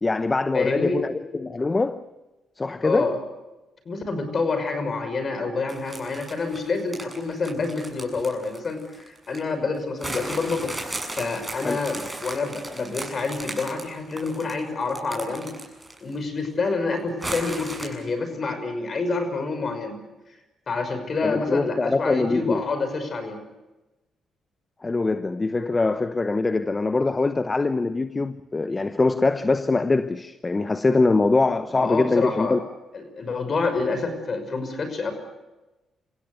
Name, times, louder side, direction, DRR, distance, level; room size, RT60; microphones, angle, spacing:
voice 1, 0.0-2.0 2.6-3.2 11.6-11.8 21.2-22.6 24.8-32.6, left 3 dB, 25° left, 0.9 m, -23 dB
voice 2, 0.5-1.0 2.8-3.2 3.9-10.7 11.1-15.6 16.0-20.0 20.7-23.4 31.7-32.6 32.9-35.1, left 3 dB, 45° left, 5.8 m, -27 dB
sound 1, 5.7-9.4 10.0-16.1 16.4-16.5 17.2-17.9, right 1 dB, 10° right, 7.2 m, -36 dB
27.5 x 16.0 x 8.0 m
cardioid pair, 70°, 0 cm